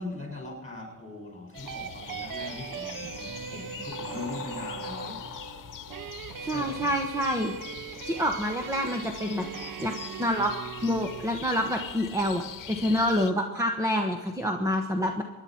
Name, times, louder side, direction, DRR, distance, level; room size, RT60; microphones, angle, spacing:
voice 1, 0.0-5.3 6.4-6.8, left 2 dB, 20° left, 0 dB, 6.5 m, -40 dB
sound 1, 1.5-13.3, left 9 dB, 70° left, 1.0 m, -43 dB
sound 2, 1.5-11.3, right 7 dB, 75° right, 0.8 m, -40 dB
voice 2, 6.4-7.6 8.0-9.5 9.8-9.9 10.2-10.5 10.8-15.2, equal, 10° right, 3 dB, 1.0 m, -27 dB
25.0 x 10.5 x 4.4 m, 1.2 s
wide cardioid pair, 155°, 33 cm